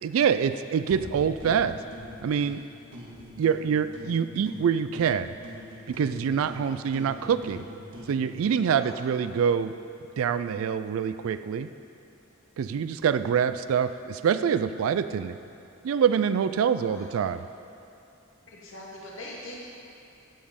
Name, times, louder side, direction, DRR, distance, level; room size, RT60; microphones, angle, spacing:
voice 1, 0.0-1.8 2.2-2.6 3.4-5.3 6.0-7.7 8.1-9.7 10.2-11.7 12.6-15.4 15.8-17.4, right 7 dB, 90° right, 12 dB, 0.3 m, -25 dB
sound 1, 0.9-2.6 2.9-4.7 4.9-8.7, left 1 dB, 70° right, 1.6 m, -44 dB
voice 2, 6.7-7.1 8.7-9.2 16.7-17.2 18.5-19.6, left 1 dB, 70° left, -4 dB, 2.1 m, -44 dB
15.0 x 5.3 x 5.2 m, 2.6 s
head